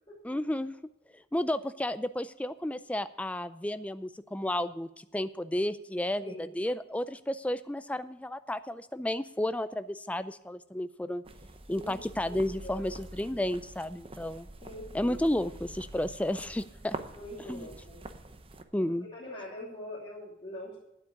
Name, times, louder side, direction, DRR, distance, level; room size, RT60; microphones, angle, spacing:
voice 1, 0.2-0.7 1.1-11.2 11.7-14.5 14.9-17.0 17.5-17.7 18.7-19.1, left 1 dB, 5° left, 12 dB, 0.4 m, -32 dB
voice 2, 6.2-6.5 11.7-12.0 12.2-13.0 14.6-15.2 17.1-18.0 19.0-20.8, left 1 dB, 30° left, -9 dB, 3.0 m, -43 dB
sound 1, 11.2-18.6, right 2 dB, 30° right, 0.8 m, -45 dB
9.7 x 8.4 x 8.2 m, 0.82 s
head